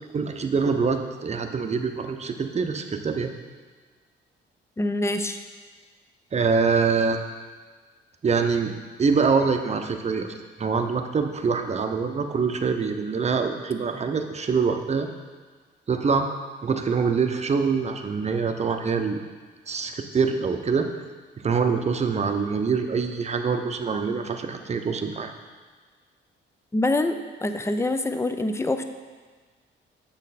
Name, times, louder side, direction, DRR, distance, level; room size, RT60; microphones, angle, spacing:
voice 1, 0.1-3.3 6.3-7.2 8.2-8.7 9.0-15.1 15.9-16.3 16.6-19.2 19.7-20.9 21.4-25.3, right 5 dB, 35° right, 6 dB, 0.8 m, -24 dB
voice 2, 4.8-5.4 26.7-28.8, left 2 dB, 15° left, 8 dB, 0.6 m, -25 dB
8.0 x 6.3 x 4.1 m, 1.4 s
cardioid pair, 90°, 20 cm